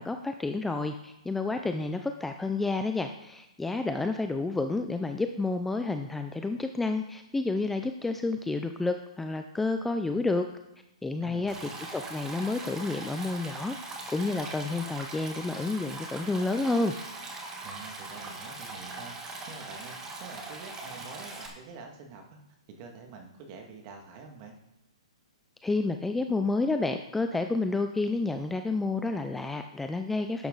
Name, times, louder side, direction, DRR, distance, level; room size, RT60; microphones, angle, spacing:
voice 1, 0.0-10.5 11.0-11.5 11.9-13.8 14.1-16.9 25.6-30.5, left 3 dB, 5° left, 6 dB, 0.5 m, -30 dB
voice 2, 11.2-11.9 17.6-19.1 19.5-22.4 22.8-24.5, right 4 dB, 35° right, 3 dB, 2.2 m, -46 dB
Stream, 11.5-21.5, right 3 dB, 15° right, 1.9 m, -41 dB
11.5 x 8.1 x 4.0 m, 0.90 s
hypercardioid pair, 140°, 3 cm